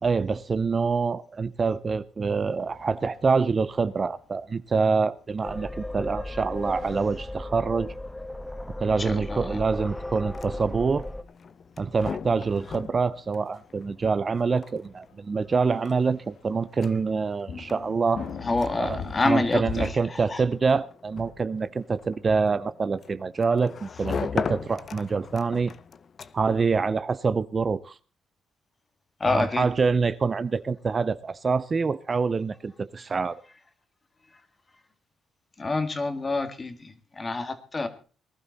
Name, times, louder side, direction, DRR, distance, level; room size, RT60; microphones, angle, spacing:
voice 1, 0.0-7.9 8.8-11.0 11.8-18.2 18.8-19.0 19.2-25.7 26.3-28.0 29.2-33.4, right 4 dB, 35° right, 0.6 m, -26 dB
sound 1, 2.3-19.9, left 6 dB, 60° left, 2.0 m, -44 dB
sound 2, 5.4-11.2, left 1 dB, 10° left, 0.7 m, -35 dB
voice 2, 9.0-9.6 18.4-20.4 29.2-29.7 35.6-37.9, left 3 dB, 30° left, 2.0 m, -27 dB
sound 3, 10.1-26.7, left 6 dB, 45° left, 0.8 m, -39 dB
19.5 x 12.0 x 4.1 m
cardioid pair, 90°, 0 cm